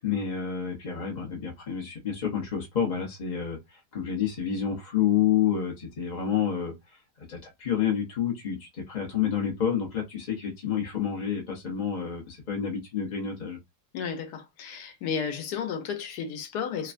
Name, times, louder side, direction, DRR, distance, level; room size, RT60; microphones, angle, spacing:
voice 1, 0.0-6.7 7.2-13.6, left 8 dB, 45° left, 0.6 m, -29 dB
voice 2, 13.9-16.9, left 7 dB, 75° left, 1.2 m, -33 dB
3.3 x 2.2 x 2.4 m
omnidirectional pair, 1.9 m